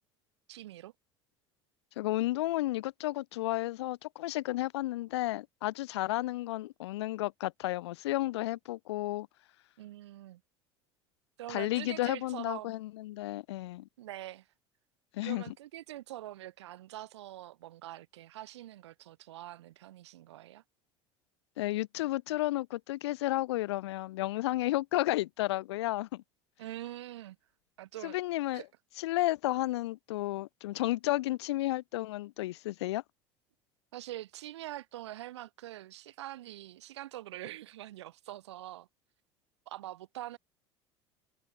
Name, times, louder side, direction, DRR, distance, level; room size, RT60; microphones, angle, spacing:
voice 1, 0.5-0.9 9.8-10.4 11.4-12.8 14.0-14.5 15.2-20.6 26.6-27.4 27.8-28.2 28.5-28.6 33.9-38.9 39.7-40.4, right 14 dB, 70° right, 1.5 m, -44 dB
voice 2, 2.0-9.3 11.5-13.9 15.1-15.4 21.6-26.2 28.0-28.6 29.0-33.0, left 17 dB, 70° left, 0.9 m, -32 dB
figure-of-eight pair, 70°, 15 cm